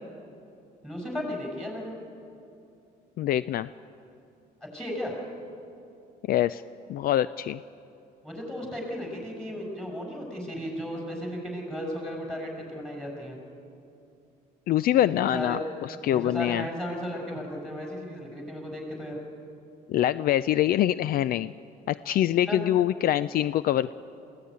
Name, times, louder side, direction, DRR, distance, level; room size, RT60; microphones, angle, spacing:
voice 1, 0.8-2.0 4.7-5.2 8.2-13.4 15.3-15.6 15.9-19.2 22.5-22.6, equal, 5° left, 1 dB, 6.3 m, -35 dB
voice 2, 3.2-3.7 6.3-6.6 6.9-7.6 14.7-16.7 19.9-21.5 21.9-23.9, left 12 dB, 60° left, 16 dB, 0.4 m, -24 dB
22.0 x 16.5 x 9.6 m, 2.7 s
cardioid pair, 110°, 17 cm